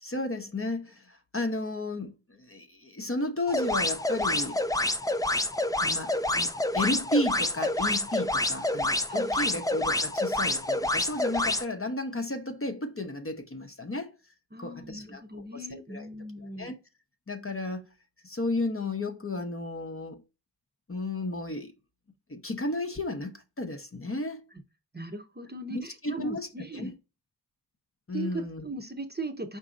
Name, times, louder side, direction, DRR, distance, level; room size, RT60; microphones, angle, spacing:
voice 1, 0.0-4.6 5.8-14.1 14.6-16.1 16.6-16.8 17.3-17.8 18.2-20.2 20.9-21.7 22.3-24.4 25.7-26.5 26.7-26.9 28.1-28.7, left 2 dB, 30° left, 0.7 m, -33 dB
sound 1, 3.5-11.6, left 1 dB, 10° left, 0.4 m, -28 dB
voice 2, 9.1-9.6 14.5-16.7 24.9-26.9 28.1-29.6, right 2 dB, 25° right, 0.8 m, -39 dB
5.0 x 2.7 x 3.7 m
wide cardioid pair, 45°, 43 cm